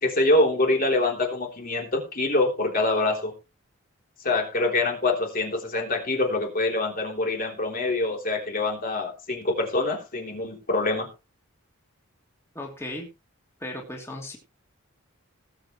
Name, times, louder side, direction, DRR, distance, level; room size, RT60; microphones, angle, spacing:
voice 1, 0.0-3.3 4.2-11.1, left 2 dB, 40° left, 2 dB, 3.4 m, -25 dB
voice 2, 12.5-13.1 13.6-14.4, left 1 dB, 10° left, -1 dB, 2.9 m, -36 dB
19.0 x 8.0 x 3.1 m, 0.28 s
head